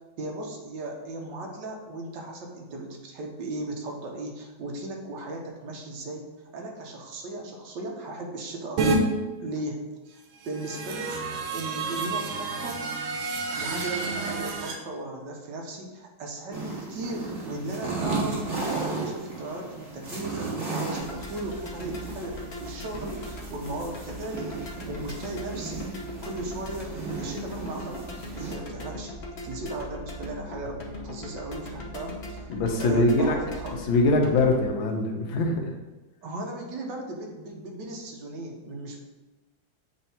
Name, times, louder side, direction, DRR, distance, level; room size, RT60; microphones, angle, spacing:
voice 1, 0.2-6.2 6.5-9.0 9.4-11.1 11.5-12.8 13.5-28.1 28.4-32.4 32.8-33.8 36.2-39.0, right 2 dB, 70° right, 1 dB, 1.5 m, -36 dB
sound 1, 8.8-9.0 10.4-14.7, right 3 dB, 90° right, 1.6 m, -29 dB
sound 2, 16.5-28.5, right 3 dB, 20° right, 1.5 m, -35 dB
sound 3, 20.9-34.7, left 1 dB, 45° left, 0.8 m, -40 dB
voice 2, 32.5-33.4 33.9-35.5, left 2 dB, 85° left, 3 dB, 1.6 m, -22 dB
8.0 x 2.7 x 4.3 m, 1.1 s
omnidirectional pair, 2.1 m